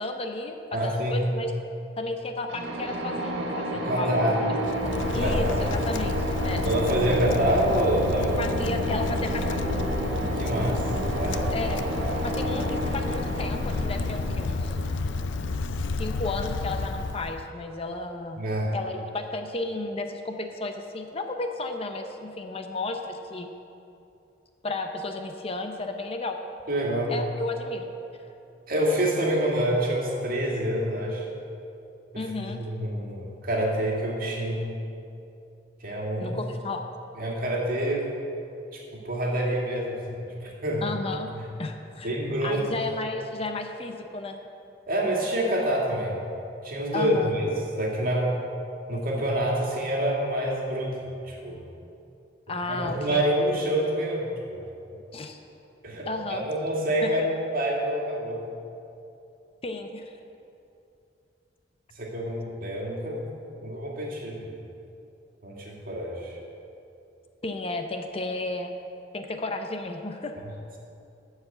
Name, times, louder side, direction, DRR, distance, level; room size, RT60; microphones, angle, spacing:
voice 1, 0.0-0.6 0.8-1.6 2.0-4.6 5.1-6.6 8.4-9.6 11.5-11.9 12.2-14.8 16.0-18.4 18.7-23.5 24.6-26.4 27.1-27.9 32.2-32.6 36.2-36.8 40.8-42.1 42.4-44.4 46.9-47.3 52.5-53.2 55.1-55.4 56.1-56.4 57.0-57.3 59.6-60.1 67.4-68.8 69.1-70.3, left 2 dB, 30° left, 5 dB, 0.6 m, -33 dB
voice 2, 0.7-1.2 3.8-4.4 5.0-5.6 6.6-8.4 10.3-10.9 11.2-11.5 18.4-18.7 26.7-27.1 28.7-31.3 32.3-34.6 35.8-36.4 37.2-38.0 38.7-40.8 41.3-41.5 42.0-42.6 44.9-46.2 46.6-47.5 47.8-48.3 48.9-51.0 51.3-51.6 52.7-54.6 55.8-58.4 62.0-63.3 63.6-64.5 65.4-66.4, right 1 dB, 50° right, -2 dB, 2.1 m, -27 dB
sound 1, 2.5-16.2, right 1 dB, 80° right, 1.4 m, -31 dB
Wind, 4.6-17.4, left 3 dB, 80° left, 0.5 m, -30 dB
13.0 x 4.9 x 7.8 m, 2.7 s
head